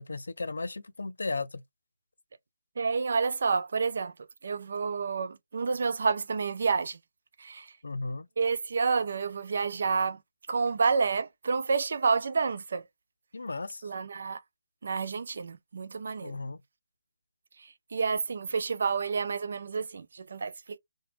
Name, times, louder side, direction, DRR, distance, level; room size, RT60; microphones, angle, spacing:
voice 1, 0.0-1.6 7.8-8.3 13.3-13.8 16.2-16.6, left 3 dB, 85° left, 0.5 m, -35 dB
voice 2, 2.8-4.1 4.4-7.0 7.4-7.7 8.4-10.2 10.5-12.8 13.8-14.4 14.8-16.4 17.9-20.8, right 5 dB, 55° right, 0.4 m, -29 dB
2.9 x 2.2 x 3.0 m
hypercardioid pair, 165°, 0 cm